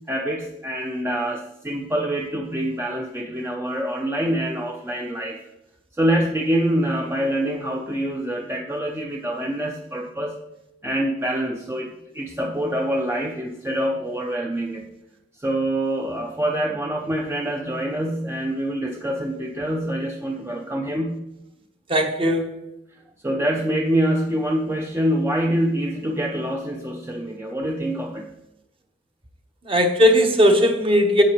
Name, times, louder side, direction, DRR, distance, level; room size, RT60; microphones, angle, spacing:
voice 1, 0.1-5.4 6.0-10.4 10.8-14.9 15.4-21.2 23.2-28.3, right 1 dB, 15° right, 1 dB, 0.6 m, -25 dB
voice 2, 21.9-22.5 29.7-31.2, equal, 30° right, 4 dB, 1.1 m, -17 dB
10.5 x 7.6 x 3.1 m, 0.89 s
head